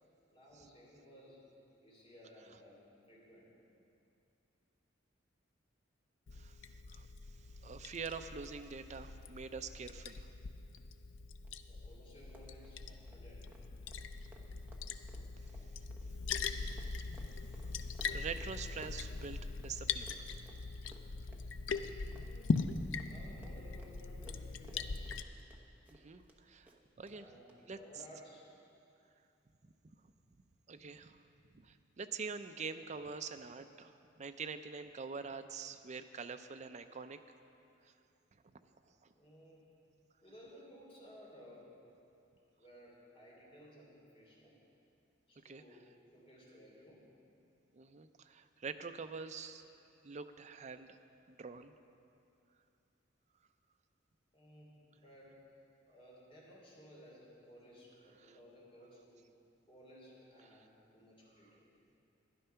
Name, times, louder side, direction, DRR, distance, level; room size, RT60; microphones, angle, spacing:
voice 1, 0.3-1.4 1.8-2.8 3.1-3.5 11.6-13.5 22.2-22.6 23.0-25.0 27.1-28.5 39.1-39.6 40.2-41.7 42.6-44.5 45.3-45.9 46.1-47.0 54.3-55.4 55.9-59.2 59.7-61.6, equal, 30° left, -5 dB, 3.2 m, -57 dB
Liquid, 6.3-25.2, left 4 dB, 70° left, 0.5 m, -41 dB
voice 2, 7.6-10.2 16.5-16.8 18.1-20.1 25.9-26.7 27.0-27.3 27.7-27.8 30.7-31.2 31.5-37.2 45.4-45.6 47.7-49.6 50.0-51.0 51.3-51.7, right 5 dB, 40° right, 8 dB, 0.5 m, -45 dB
Run, 11.4-11.5 11.8-11.9 12.2-19.7 20.0-26.4 26.7-27.2 27.5-27.6 28.0-28.1, right 1 dB, 10° right, 1.0 m, -60 dB
12.5 x 10.5 x 5.7 m, 2.7 s
head